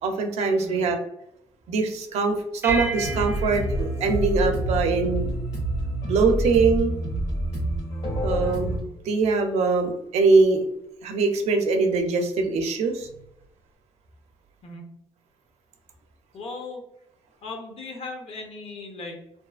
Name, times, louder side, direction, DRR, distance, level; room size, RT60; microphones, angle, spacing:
voice 1, 0.0-1.0 1.7-5.3 6.1-6.9 8.2-10.6 11.0-13.1, right 4 dB, 85° right, 5 dB, 0.4 m, -22 dB
sound 1, 2.6-5.4, right 3 dB, 20° right, 0.4 m, -34 dB
sound 2, 2.7-8.8, right 1 dB, 85° left, 1.4 m, -28 dB
voice 2, 16.3-16.8 17.4-19.2, left 3 dB, 65° left, 2 dB, 0.7 m, -37 dB
2.6 x 2.4 x 2.3 m, 0.82 s
cardioid pair, 90°, 11 cm